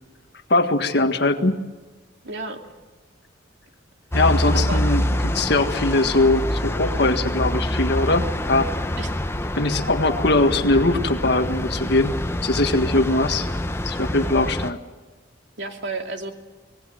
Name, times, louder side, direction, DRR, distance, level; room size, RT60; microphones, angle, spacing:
voice 1, 0.5-1.6 4.1-8.7 9.6-13.5 13.8-14.8, left 2 dB, 55° left, 7 dB, 1.7 m, -21 dB
voice 2, 2.2-2.7 4.5-4.9 9.0-9.1 9.7-10.0 15.6-16.3, right 2 dB, 65° right, 4 dB, 2.6 m, -32 dB
sound 1, 4.1-14.7, left 1 dB, 15° left, 0.8 m, -26 dB
25.5 x 19.0 x 7.8 m, 1.3 s
head